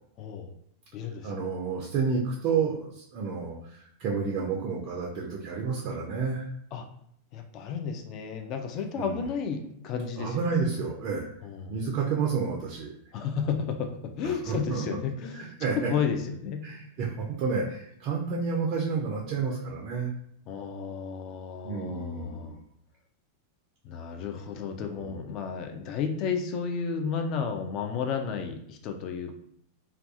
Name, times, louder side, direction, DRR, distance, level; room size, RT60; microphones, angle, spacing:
voice 1, 0.2-0.5 0.9-1.3 6.7-6.9 7.3-10.6 11.4-11.8 13.1-15.5 15.9-16.6 20.5-22.6 23.8-29.3, left 6 dB, 40° left, 5 dB, 0.3 m, -32 dB
voice 2, 1.2-6.5 8.9-9.2 10.2-11.3 11.7-12.9 14.2-14.8 15.3-16.0 16.6-20.1 21.6-22.6 24.9-25.2, right 5 dB, 40° right, -1 dB, 0.3 m, -30 dB
2.3 x 2.2 x 2.5 m, 0.71 s
figure-of-eight pair, 90°, 0 cm